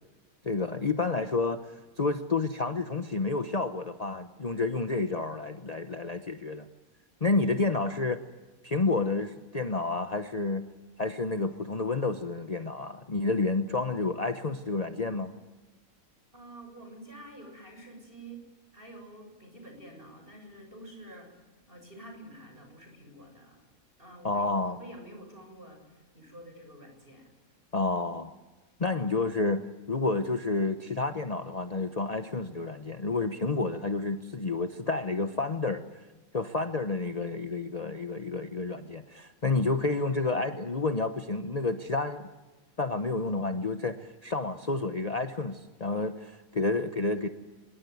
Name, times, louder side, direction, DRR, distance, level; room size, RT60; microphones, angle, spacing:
voice 1, 0.4-6.7 7.2-8.2 8.6-10.7 11.0-15.4 24.2-24.8 27.7-28.3 28.8-35.8 36.3-42.3 42.8-47.3, left 3 dB, 30° left, 7 dB, 1.0 m, -30 dB
voice 2, 16.3-18.4 18.7-21.4 21.7-23.6 24.0-27.3, right 1 dB, 40° right, 4 dB, 7.4 m, -48 dB
25.5 x 21.5 x 9.4 m, 1.2 s
omnidirectional pair, 1.5 m